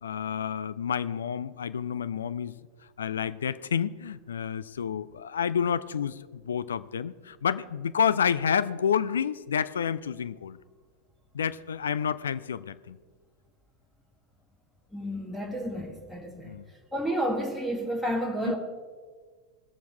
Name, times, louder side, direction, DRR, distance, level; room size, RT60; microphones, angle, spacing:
voice 1, 0.0-2.5 3.0-10.6 11.3-13.0 16.4-16.7 18.5-18.6, left 7 dB, 65° left, 15 dB, 0.5 m, -29 dB
voice 2, 14.9-16.5 16.9-18.6, equal, ahead, -1 dB, 1.5 m, -31 dB
20.0 x 7.0 x 4.6 m, 1.5 s
figure-of-eight pair, 90°, 0 cm